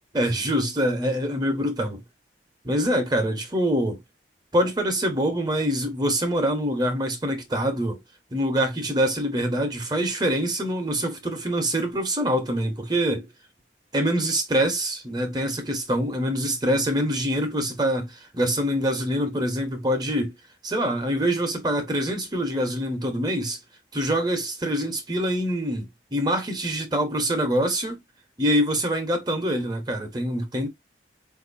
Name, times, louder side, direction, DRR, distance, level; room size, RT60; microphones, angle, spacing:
voice 1, 0.1-2.0 2.6-4.0 4.5-8.0 8.3-13.3 13.9-20.3 20.6-23.6 23.9-28.0 28.4-30.7, equal, 25° right, 0.9 m, -25 dB
4.6 x 2.7 x 2.6 m
head